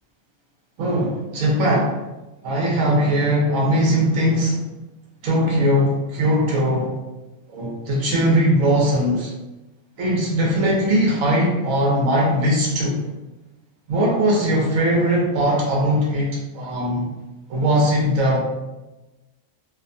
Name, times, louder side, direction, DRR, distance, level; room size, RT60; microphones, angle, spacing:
voice 1, 0.8-1.9 2.4-4.6 5.2-6.9 7.5-9.3 10.0-13.0 13.9-17.1 17.5-18.4, equal, 80° right, -3 dB, 1.1 m, -20 dB
2.7 x 2.2 x 2.5 m, 1.1 s
omnidirectional pair, 1.4 m